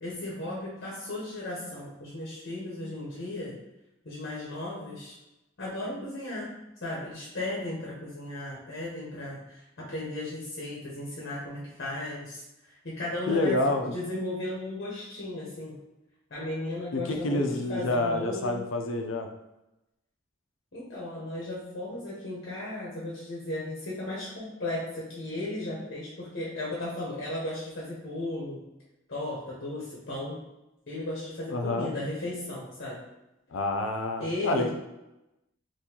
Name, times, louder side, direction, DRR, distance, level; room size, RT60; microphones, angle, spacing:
voice 1, 0.0-3.5 4.0-5.2 5.6-6.5 6.8-15.8 16.3-18.6 20.7-28.6 29.1-30.4 30.9-33.0 34.2-34.7, left 1 dB, 55° left, -5 dB, 0.9 m, -35 dB
voice 2, 13.3-13.9 16.9-19.3 31.5-31.9 33.5-34.7, left 2 dB, 85° left, 4 dB, 0.5 m, -28 dB
3.7 x 2.6 x 2.9 m, 0.94 s
head